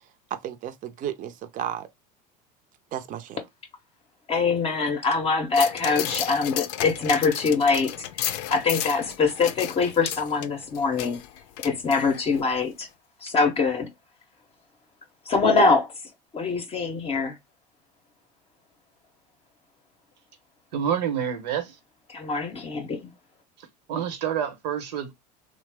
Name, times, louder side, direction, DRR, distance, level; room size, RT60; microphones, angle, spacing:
voice 1, 0.3-1.9 2.9-3.4, right 10 dB, 40° right, 0.5 m, -33 dB
voice 2, 4.3-11.2 11.6-12.9 13.2-13.9 15.3-15.9 16.3-17.4 22.1-23.1, left 4 dB, 30° left, 0.6 m, -24 dB
sound 1, 5.5-12.4 12.8-12.9, left 12 dB, 70° left, 0.5 m, -33 dB
voice 3, 20.7-21.8 23.6-25.1, right 8 dB, 85° right, 0.9 m, -28 dB
2.9 x 2.0 x 3.3 m
supercardioid pair, 100°, 21 cm